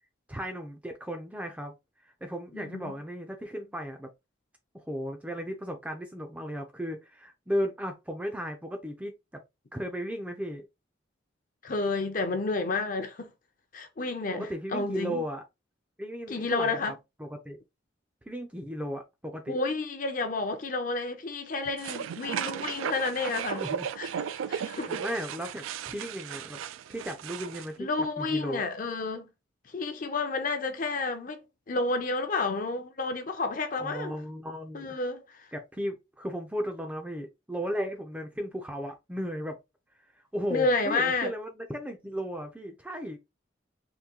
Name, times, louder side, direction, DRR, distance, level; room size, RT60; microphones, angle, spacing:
voice 1, 0.3-1.8 2.0-4.1 4.7-9.4 9.7-10.7 14.3-15.4 16.0-16.8 17.2-17.6 18.3-19.6 23.5-23.9 24.9-26.6 26.9-27.9 28.2-28.6 33.7-35.0 35.5-39.6 40.3-43.2, equal, 5° right, 0.4 m, -35 dB
voice 2, 2.5-2.9 11.6-13.3 13.7-15.2 16.3-16.9 19.5-23.6 24.0-24.1 24.5-25.0 27.8-29.3 29.7-34.2 34.7-35.5 40.5-41.3, left 3 dB, 40° left, 0.5 m, -30 dB
sound 1, 21.8-27.7, right 8 dB, 85° right, 0.3 m, -35 dB
3.7 x 2.6 x 2.8 m
head